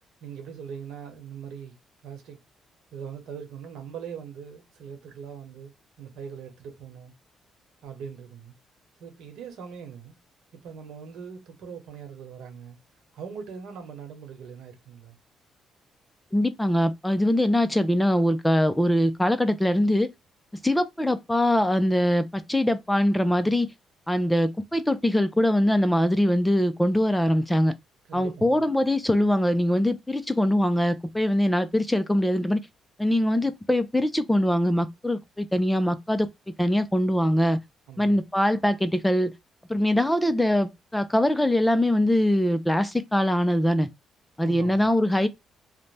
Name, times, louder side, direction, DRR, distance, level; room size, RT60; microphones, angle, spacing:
voice 1, 0.2-1.7 2.0-2.4 2.9-7.1 7.8-8.5 9.0-10.2 10.5-12.8 13.1-15.2 28.1-28.6 37.9-38.2 44.3-44.9, right 7 dB, 85° right, 1.0 m, -41 dB
voice 2, 16.3-20.1 20.6-23.7 24.1-27.7 28.1-32.6 33.0-36.3 36.6-37.6 38.0-39.3 39.7-43.9 44.4-45.3, left 1 dB, 10° left, 0.4 m, -22 dB
2.6 x 2.1 x 3.2 m
cardioid pair, 90°, 0 cm